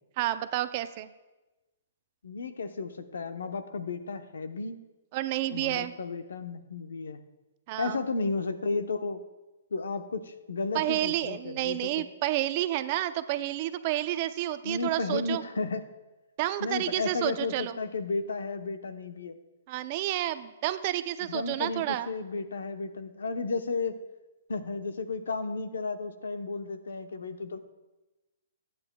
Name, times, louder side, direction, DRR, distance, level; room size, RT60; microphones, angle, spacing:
voice 1, 0.2-1.1 5.1-5.9 7.7-8.0 10.7-15.4 16.4-17.8 19.7-22.1, right 14 dB, 35° right, 12 dB, 0.5 m, -30 dB
voice 2, 2.2-4.8 5.5-7.2 7.8-9.2 9.7-12.0 14.6-15.8 16.6-19.4 21.2-24.0 24.5-27.6, left 3 dB, 90° left, 9 dB, 0.8 m, -33 dB
25.5 x 9.6 x 2.3 m, 1.1 s
hypercardioid pair, 155°, 0 cm